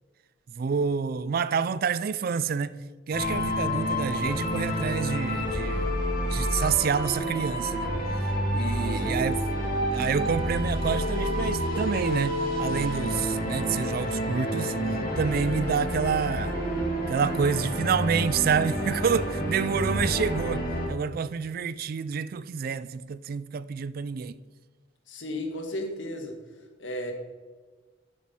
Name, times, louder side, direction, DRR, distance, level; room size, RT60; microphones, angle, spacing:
voice 1, 0.5-5.9 6.3-7.9 8.5-9.4 9.9-14.7 15.2-16.5 17.1-24.4, right 6 dB, 50° right, 0.3 m, -28 dB
sound 1, 3.1-20.9, equal, 50° left, 2.3 m, -29 dB
voice 2, 8.8-9.4 25.1-26.4 26.8-27.1, left 1 dB, 70° left, 1.6 m, -34 dB
11.5 x 7.5 x 4.3 m
head